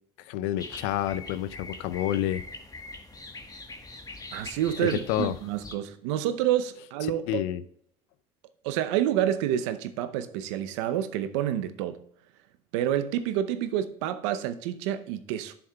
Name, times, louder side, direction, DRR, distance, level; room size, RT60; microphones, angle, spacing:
voice 1, 0.2-2.4 4.8-5.4 7.0-7.6, left 12 dB, 80° left, 0.5 m, -29 dB
sound 1, 0.6-5.7, left 3 dB, 25° left, 1.3 m, -42 dB
voice 2, 4.3-7.2 8.6-12.0 12.7-15.5, right 11 dB, 80° right, 0.7 m, -28 dB
11.0 x 7.0 x 2.3 m
hypercardioid pair, 65°, 15 cm